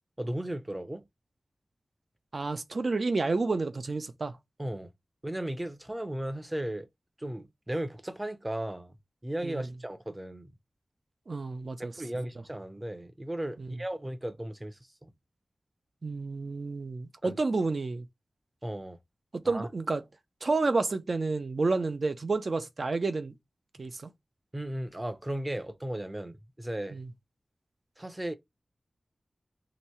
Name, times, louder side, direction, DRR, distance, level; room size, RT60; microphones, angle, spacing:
voice 1, 0.2-1.0 4.6-4.9 5.2-6.9 7.2-9.0 9.2-10.5 11.8-15.1 17.2-17.4 18.6-19.0 19.4-19.7 23.8-23.9 24.5-27.0 28.0-28.3, right 1 dB, 20° right, 0.7 m, -36 dB
voice 2, 2.3-4.4 9.4-9.7 11.3-11.9 13.6-13.7 16.0-18.1 19.3-20.0 20.4-23.3 23.8-24.1 26.9-27.1, right 3 dB, 55° right, 0.7 m, -30 dB
2.9 x 2.7 x 4.3 m
wide cardioid pair, 80°, 0 cm